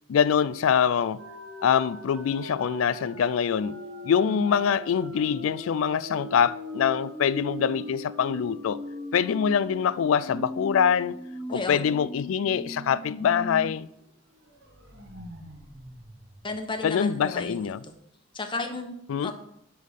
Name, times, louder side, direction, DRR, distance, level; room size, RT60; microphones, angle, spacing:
voice 1, 0.1-1.2 1.6-3.8 4.0-8.8 9.1-11.2 11.5-13.9 16.8-17.8 19.1-19.3, left 7 dB, 80° left, 0.3 m, -24 dB
sound 1, 1.2-13.7 14.0-14.1 14.5-17.2, left 1 dB, 60° right, 1.8 m, -40 dB
voice 2, 11.5-12.0 16.4-17.9 18.3-18.9 19.2-19.3, left 3 dB, 25° left, 0.9 m, -34 dB
10.0 x 3.6 x 6.7 m
head